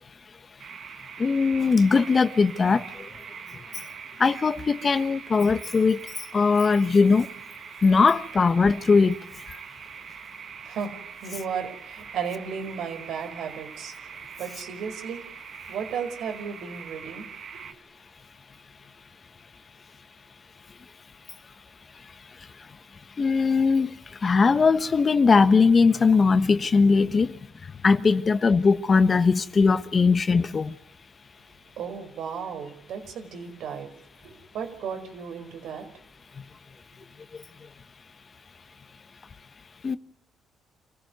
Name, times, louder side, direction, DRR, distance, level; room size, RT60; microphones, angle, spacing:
sound 1, 0.6-17.7, right 7 dB, 60° right, 2.1 m, -43 dB
voice 1, 1.2-2.8 4.2-6.0 6.3-7.3 7.8-9.2 23.2-23.9 24.2-27.3 27.8-30.7 39.8-40.0, left 4 dB, 35° left, 1.3 m, -20 dB
voice 2, 10.6-13.9 14.4-15.3 15.7-17.7 31.8-33.9 34.2-35.9, right 6 dB, 80° right, 5.0 m, -34 dB
27.0 x 15.5 x 9.5 m
cardioid pair, 90°, 0 cm